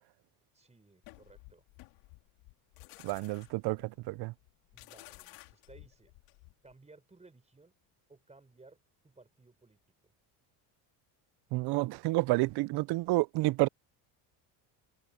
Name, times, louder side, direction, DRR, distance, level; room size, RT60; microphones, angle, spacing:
voice 1, 0.5-1.6 4.7-6.1 6.6-7.7 8.1-10.1, right 3 dB, 15° right, 4.5 m, -59 dB
sound 1, 1.0-6.7, left 23 dB, 85° left, 2.7 m, -55 dB
voice 2, 3.0-4.3 11.5-13.7, right 21 dB, 55° right, 0.5 m, -30 dB
cardioid pair, 110°, 48 cm